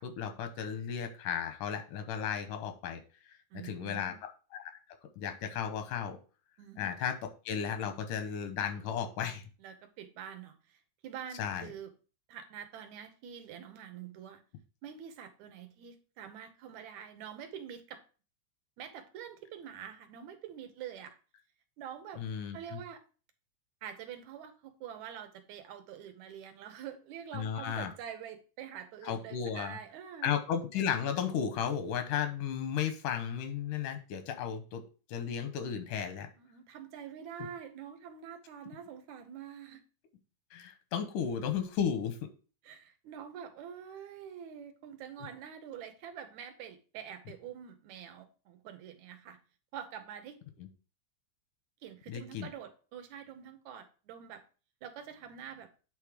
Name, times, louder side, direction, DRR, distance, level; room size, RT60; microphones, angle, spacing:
voice 1, 0.0-3.0 3.5-4.1 4.5-4.7 5.2-6.2 6.8-7.1 7.5-9.4 11.4-11.7 22.2-22.8 27.3-27.9 29.0-29.8 30.2-34.8 35.1-36.3 40.5-42.2 52.1-52.5, left 8 dB, 85° left, 7 dB, 2.5 m, -34 dB
voice 2, 3.5-4.2 6.6-6.9 9.6-11.9 12.3-14.4 14.8-18.0 18.8-21.2 21.8-22.2 22.5-23.0 23.8-30.3 36.4-39.8 42.6-49.4 49.7-50.4 51.8-54.4 54.8-55.7, right 8 dB, 75° right, 8 dB, 2.2 m, -46 dB
8.4 x 3.6 x 4.9 m, 0.37 s
omnidirectional pair, 3.5 m